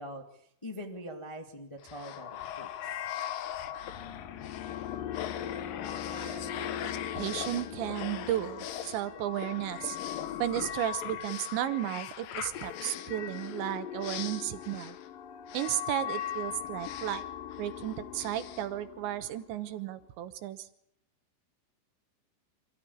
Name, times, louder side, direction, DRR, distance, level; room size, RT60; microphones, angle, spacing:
voice 1, 0.0-3.0, equal, 20° left, 2 dB, 0.8 m, -43 dB
sound 1, 1.8-19.5, left 10 dB, 70° left, 2.1 m, -38 dB
voice 2, 6.1-6.9 7.2-10.0 10.4-15.0 15.5-17.2 17.6-20.7, right 13 dB, 75° right, 11 dB, 3.3 m, -34 dB
27.0 x 15.0 x 8.5 m, 0.73 s
omnidirectional pair, 5.4 m